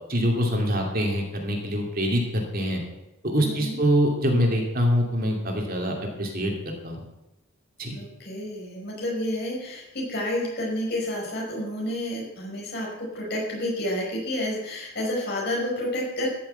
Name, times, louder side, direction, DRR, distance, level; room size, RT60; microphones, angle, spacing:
voice 1, 0.1-2.8 3.2-6.5 6.8-7.0 7.8-8.0, equal, 45° right, 1 dB, 2.6 m, -24 dB
voice 2, 3.4-3.8 7.9-16.3, left 1 dB, 50° left, -2 dB, 5.5 m, -30 dB
14.5 x 7.2 x 8.0 m, 0.96 s
head